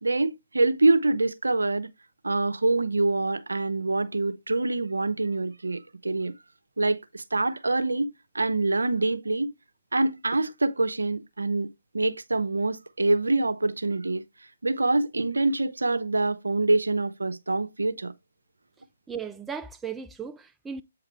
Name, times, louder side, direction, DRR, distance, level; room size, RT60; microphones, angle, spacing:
voice 1, 0.0-1.9 2.2-6.3 6.8-8.1 8.3-9.5 9.9-11.7 11.9-14.2 14.6-18.1, right 2 dB, 85° right, 0.6 m, -25 dB
voice 2, 19.1-20.8, right 6 dB, 10° right, 0.4 m, -36 dB
8.3 x 4.8 x 3.3 m
figure-of-eight pair, 140°, 0 cm